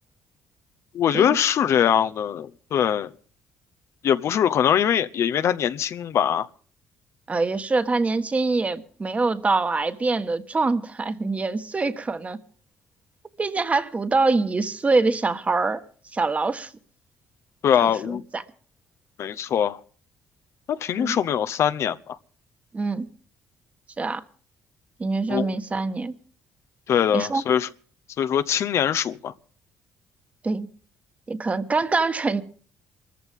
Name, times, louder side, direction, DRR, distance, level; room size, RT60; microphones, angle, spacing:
voice 1, 0.9-3.1 4.0-6.5 17.6-18.2 19.2-19.8 20.7-22.2 25.3-25.5 26.9-27.7 28.2-29.3, left 9 dB, 60° left, 0.8 m, -22 dB
voice 2, 7.3-12.4 13.4-15.8 16.1-16.7 17.8-18.4 21.0-21.2 22.7-23.1 24.0-24.2 25.0-26.1 27.1-27.4 30.4-30.7 31.3-32.4, right 3 dB, 25° right, 1.4 m, -24 dB
24.0 x 14.5 x 3.6 m
cardioid pair, 95°, 5 cm